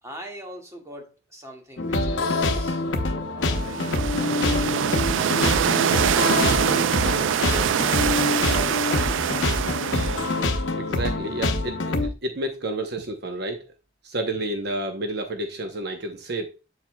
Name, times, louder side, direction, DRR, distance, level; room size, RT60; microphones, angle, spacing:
voice 1, 0.0-2.8 3.3-3.8 7.4-7.9 8.5-9.6, right 1 dB, 15° right, 1.8 m, -42 dB
sound 1, 1.8-12.1, left 2 dB, 85° left, 0.9 m, -25 dB
sound 2, 3.5-10.6, right 8 dB, 85° right, 0.4 m, -24 dB
voice 2, 10.8-13.7 14.0-16.5, right 1 dB, 60° right, 0.8 m, -30 dB
7.5 x 7.5 x 2.2 m
head